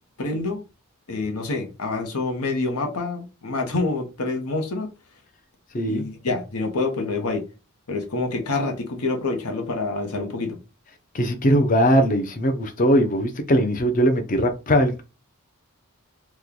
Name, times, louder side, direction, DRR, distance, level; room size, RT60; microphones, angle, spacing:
voice 1, 0.2-0.6 1.1-4.9 5.9-7.4 7.9-10.6, left 3 dB, 85° left, 0.9 m, -27 dB
voice 2, 11.1-15.0, equal, 40° left, 0.5 m, -20 dB
3.0 x 2.2 x 3.8 m
head